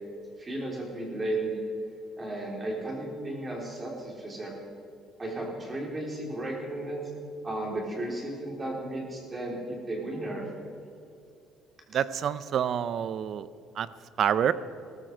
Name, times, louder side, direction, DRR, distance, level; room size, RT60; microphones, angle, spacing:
voice 1, 0.4-1.6 2.2-4.6 5.2-7.1 7.4-10.5, right 1 dB, 20° right, -1 dB, 3.3 m, -34 dB
voice 2, 11.9-13.5 13.8-13.9 14.2-14.5, right 9 dB, 45° right, 16 dB, 0.5 m, -27 dB
19.0 x 14.0 x 4.5 m, 2.4 s
cardioid pair, 155°, 0 cm